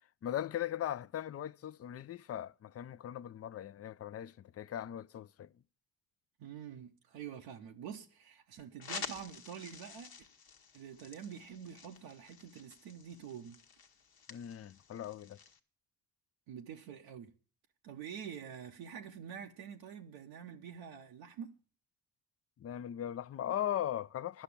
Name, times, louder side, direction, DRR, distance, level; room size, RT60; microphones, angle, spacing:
voice 1, 0.2-5.5 14.3-15.4 22.6-24.4, left 11 dB, 35° left, 0.4 m, -39 dB
voice 2, 6.4-10.1 10.7-13.6 16.5-17.3 17.8-21.6, right 8 dB, 90° right, 0.8 m, -47 dB
sound 1, 8.8-15.6, left 6 dB, 55° left, 1.1 m, -49 dB
10.5 x 5.8 x 8.4 m
supercardioid pair, 45°, 44 cm